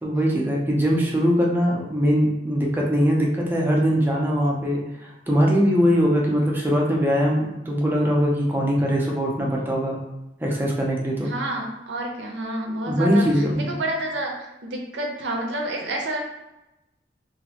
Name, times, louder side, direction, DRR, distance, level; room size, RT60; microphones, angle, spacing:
voice 1, 0.0-10.0 10.4-11.3 12.9-13.7, equal, 10° right, -2 dB, 0.4 m, -21 dB
voice 2, 11.2-14.3 14.6-16.2, right 1 dB, 90° right, 1 dB, 0.6 m, -29 dB
2.4 x 2.1 x 2.7 m, 0.93 s
head